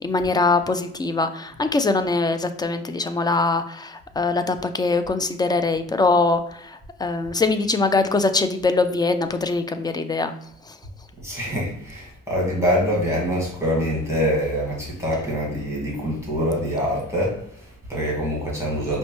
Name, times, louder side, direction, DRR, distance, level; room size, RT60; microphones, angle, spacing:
voice 1, 0.0-10.3 10.6-10.8, left 3 dB, 15° left, 9 dB, 0.3 m, -22 dB
voice 2, 11.2-19.0, equal, 10° right, -4 dB, 1.5 m, -25 dB
5.2 x 2.1 x 3.0 m, 0.70 s
cardioid pair, 90°, 30 cm